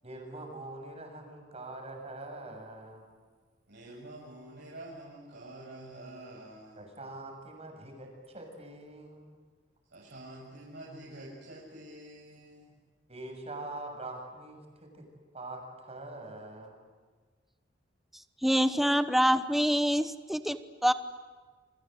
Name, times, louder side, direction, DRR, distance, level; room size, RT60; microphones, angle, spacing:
voice 1, 0.0-3.0 6.8-9.4 13.1-15.1 15.3-16.7, right 2 dB, 35° right, 3 dB, 7.3 m, -44 dB
voice 2, 3.7-6.8 9.9-12.8, right 1 dB, 65° right, -4 dB, 6.7 m, -47 dB
voice 3, 18.4-20.9, equal, ahead, 10 dB, 1.0 m, -26 dB
29.0 x 25.0 x 8.0 m, 1.5 s
head